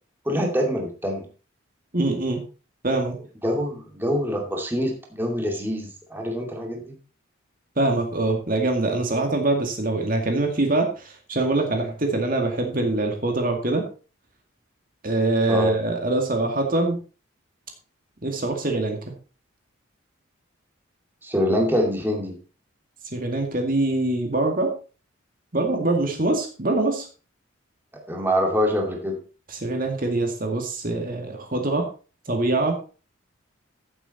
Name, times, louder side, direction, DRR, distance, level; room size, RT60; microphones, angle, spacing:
voice 1, 0.2-1.3 3.4-6.9 15.5-15.7 21.2-22.4 28.1-29.2, equal, 10° right, 1 dB, 2.5 m, -25 dB
voice 2, 1.9-2.4 2.8-3.2 7.8-13.9 15.0-17.0 18.2-19.0 23.1-24.7 25.5-27.1 29.5-31.9 32.3-32.8, right 2 dB, 40° right, 3 dB, 2.1 m, -24 dB
15.0 x 7.8 x 4.2 m, 0.35 s
head